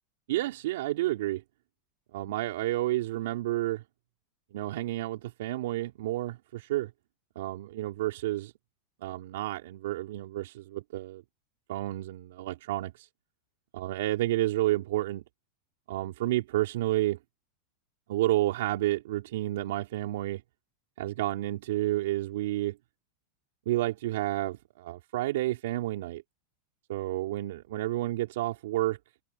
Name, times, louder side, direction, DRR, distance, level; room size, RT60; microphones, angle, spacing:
voice 1, 0.3-1.4 2.1-3.8 4.5-6.9 7.3-8.5 9.0-11.2 11.7-13.1 13.7-15.2 15.9-17.2 18.1-20.4 21.0-22.8 23.6-26.2 26.9-29.0, right 15 dB, 70° right, 3.4 m, -30 dB
open air
supercardioid pair, 160°, 0 cm